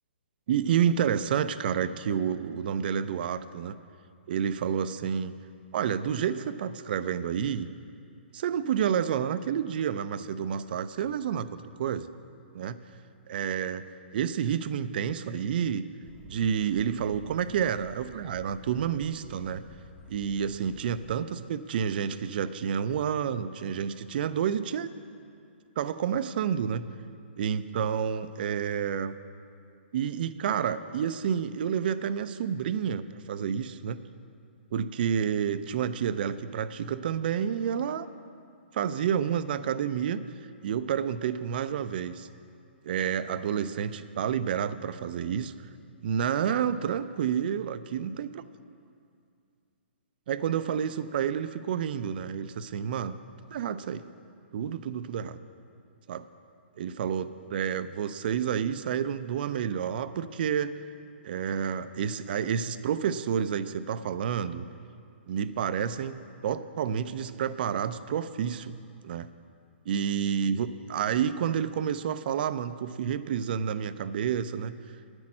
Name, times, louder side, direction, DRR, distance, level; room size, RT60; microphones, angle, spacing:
voice 1, 0.5-3.8 4.3-5.3 5.7-7.7 8.3-12.1 12.5-12.8 13.3-13.8 14.1-15.9 16.2-19.6 20.1-24.9 25.8-26.8 27.4-29.1 29.9-34.0 34.7-38.1 38.7-40.2 40.6-42.3 42.8-45.5 46.0-48.4 50.3-53.2 53.5-54.0 54.5-55.4 56.1-56.2 56.8-60.8 61.2-64.7 65.3-68.7 69.0-69.3 69.9-74.8, right 8 dB, 55° right, 12 dB, 0.5 m, -29 dB
sound 1, 16.0-21.1, left 2 dB, 10° left, 0.9 m, -52 dB
9.8 x 6.1 x 8.6 m, 2.4 s
hypercardioid pair, 145°, 6 cm